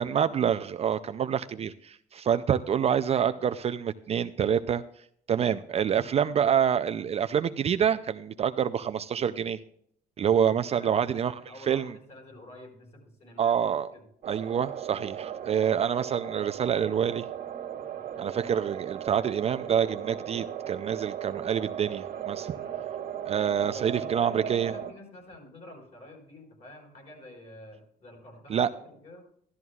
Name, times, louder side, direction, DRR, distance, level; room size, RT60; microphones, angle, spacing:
voice 1, 0.0-4.8 5.3-9.6 10.2-11.3 11.7-11.9 13.4-13.9 14.3-17.2 18.2-22.5 23.3-24.7 28.5-28.7, right 8 dB, 40° right, 11 dB, 0.4 m, -27 dB
voice 2, 10.8-13.5 13.9-14.0 17.7-18.0 22.5-22.8 23.6-29.2, left 1 dB, 40° left, 0 dB, 4.7 m, -49 dB
sound 1, 14.2-24.9, right 9 dB, 65° right, 1.6 m, -37 dB
14.0 x 12.5 x 2.4 m, 0.66 s
cardioid pair, 110°, 17 cm